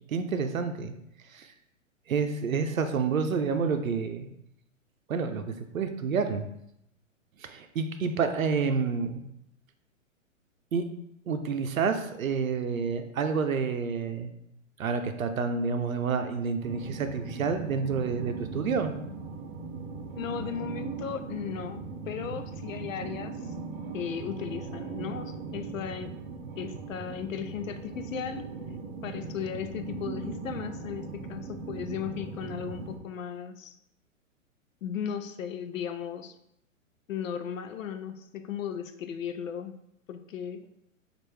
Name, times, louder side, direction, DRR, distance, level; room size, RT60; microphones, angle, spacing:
voice 1, 0.1-0.9 1.3-1.5 2.1-4.3 5.1-6.5 7.4-9.2 10.7-10.8 11.3-14.3 14.8-18.9, right 5 dB, 90° right, 8 dB, 0.6 m, -29 dB
sound 1, 16.6-33.0, right 4 dB, 40° right, 0.6 m, -39 dB
voice 2, 20.2-23.5 23.9-26.2 26.6-28.5 29.0-33.8 34.8-36.3 37.1-39.8 40.1-40.7, left 8 dB, 75° left, 9 dB, 0.5 m, -36 dB
4.4 x 2.5 x 3.2 m, 0.78 s
hypercardioid pair, 130°, 40 cm